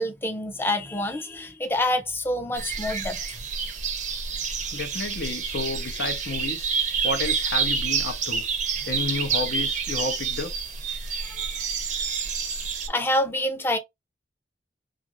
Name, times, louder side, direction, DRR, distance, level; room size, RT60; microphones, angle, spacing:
voice 1, 0.0-3.4 11.2-11.5 12.9-13.8, left 1 dB, 15° left, 0.5 m, -27 dB
sound 1, 2.5-12.9, right 6 dB, 45° right, 0.6 m, -28 dB
voice 2, 4.7-6.7 7.0-8.4 8.8-10.5, left 3 dB, 70° left, 0.7 m, -31 dB
2.5 x 2.5 x 2.9 m
head